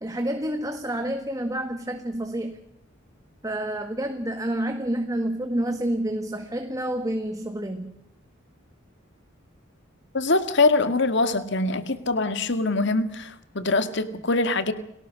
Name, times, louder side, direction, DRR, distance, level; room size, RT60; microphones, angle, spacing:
voice 1, 0.0-2.6 3.4-8.0, right 1 dB, 15° right, 6 dB, 1.6 m, -29 dB
voice 2, 10.1-14.7, left 3 dB, 60° left, 10 dB, 2.0 m, -23 dB
30.0 x 18.5 x 6.5 m, 0.79 s
head